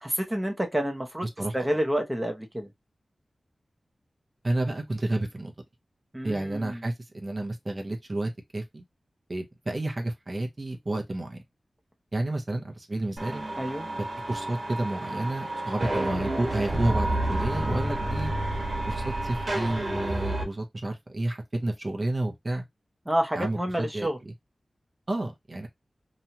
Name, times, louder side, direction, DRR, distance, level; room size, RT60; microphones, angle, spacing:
voice 1, 0.0-1.3 1.5-2.7 6.1-6.8 13.6-13.9 23.1-24.2, right 1 dB, 10° right, 0.7 m, -29 dB
voice 2, 4.4-5.5 6.2-8.8 9.3-11.4 12.1-13.4 14.3-18.3 18.9-22.6 23.3-24.3 25.1-25.7, right 2 dB, 40° right, 0.7 m, -30 dB
sound 1, 13.2-20.4, right 1 dB, 60° right, 1.2 m, -30 dB
3.0 x 2.3 x 2.8 m
wide cardioid pair, 60°, 0 cm